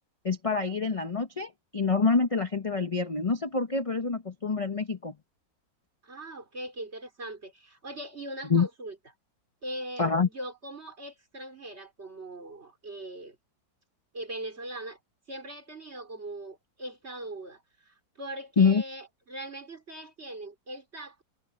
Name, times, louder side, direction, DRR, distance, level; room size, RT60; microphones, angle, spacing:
voice 1, 0.2-5.1 8.5-8.7 10.0-10.3 18.6-18.8, left 4 dB, 30° left, 0.7 m, -26 dB
voice 2, 6.0-9.0 9.6-13.4 14.1-15.0 15.3-21.2, right 1 dB, 35° right, 4.2 m, -40 dB
omnidirectional pair, 2.0 m